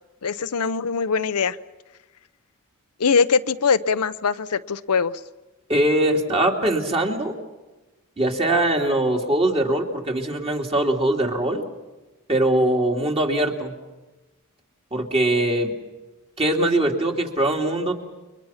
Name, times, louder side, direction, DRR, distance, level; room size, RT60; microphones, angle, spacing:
voice 1, 0.2-1.6 3.0-5.2, left 5 dB, 80° left, 12 dB, 0.7 m, -22 dB
voice 2, 5.7-7.4 8.2-11.7 12.3-13.7 14.9-15.7 16.4-17.9, right 1 dB, 25° right, 1 dB, 2.7 m, -22 dB
29.5 x 23.5 x 5.7 m, 1.1 s
head